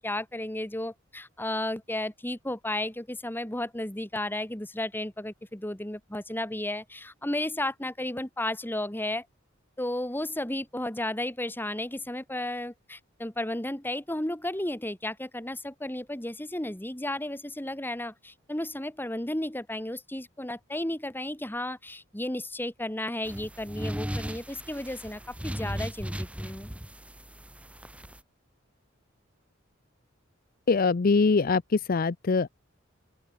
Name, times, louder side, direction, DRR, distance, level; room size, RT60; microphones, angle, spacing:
voice 1, 0.0-9.3 9.8-26.7, left 1 dB, 10° left, 1.9 m, -33 dB
sound 1, 23.2-28.2, equal, 5° right, 2.1 m, -37 dB
voice 2, 30.7-32.5, left 4 dB, 45° left, 0.5 m, -23 dB
open air
head